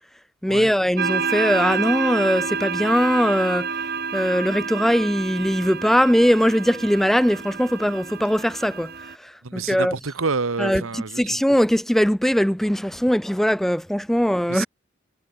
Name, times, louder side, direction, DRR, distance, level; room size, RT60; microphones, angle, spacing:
voice 1, 0.4-3.7 4.1-10.0 10.6-14.7, equal, ahead, 0.4 m, -21 dB
sound 1, 1.0-9.2, right 5 dB, 45° right, 4.2 m, -29 dB
voice 2, 9.4-11.2 14.5-14.7, right 4 dB, 85° right, 1.1 m, -28 dB
head